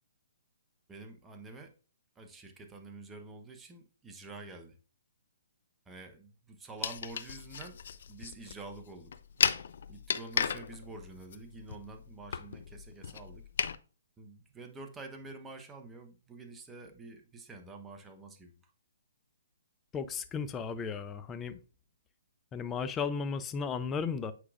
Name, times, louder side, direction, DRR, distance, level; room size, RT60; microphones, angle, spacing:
voice 1, 0.9-1.7 2.1-4.8 5.9-7.8 8.1-9.1 9.9-13.4 14.2-18.5, right 3 dB, 10° right, 4 dB, 0.9 m, -48 dB
sound 1, 6.8-13.8, left 7 dB, 60° left, 0.4 m, -35 dB
voice 2, 19.9-21.6 22.5-24.3, left 5 dB, 15° left, 11 dB, 0.5 m, -35 dB
8.3 x 4.7 x 2.5 m, 0.37 s
hypercardioid pair, 140°, 0 cm